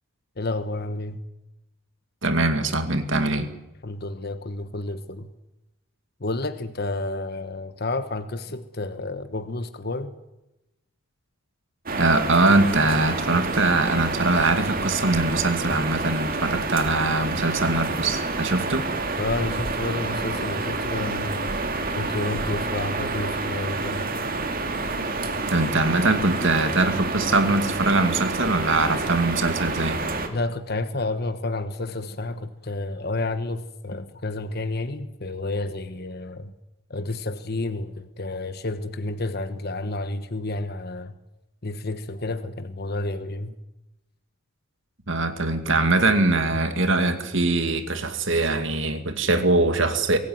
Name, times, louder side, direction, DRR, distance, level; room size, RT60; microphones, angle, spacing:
voice 1, 0.4-1.2 3.8-5.3 6.2-10.1 19.2-21.6 21.9-24.3 30.3-36.5 36.9-41.1 41.6-43.5, left 2 dB, 50° left, 1.2 m, -30 dB
voice 2, 2.2-3.5 12.0-18.9 25.5-30.0 45.1-50.2, right 2 dB, 60° right, 2.2 m, -22 dB
sound 1, 11.9-30.3, right 3 dB, 40° right, 2.4 m, -28 dB
23.5 x 17.0 x 9.5 m
head